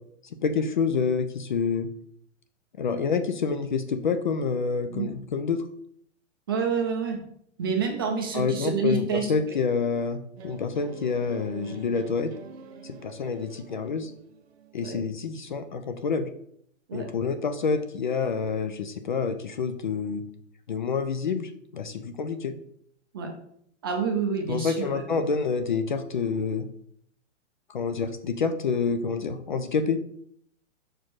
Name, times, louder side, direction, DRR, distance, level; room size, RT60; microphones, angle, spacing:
voice 1, 0.4-1.9 2.8-5.6 8.3-12.3 12.8-14.1 14.7-16.3 16.9-20.2 20.7-22.6 24.5-26.7 27.7-30.0, left 5 dB, 40° left, 9 dB, 0.4 m, -27 dB
voice 2, 6.5-7.2 7.6-9.6 14.8-15.0 16.9-17.1 23.1-23.3 23.8-25.2, right 5 dB, 20° right, 2 dB, 0.5 m, -28 dB
sound 1, 10.4-15.0, right 4 dB, 55° right, 1.0 m, -45 dB
5.9 x 4.5 x 4.6 m, 0.69 s
hypercardioid pair, 165°, 38 cm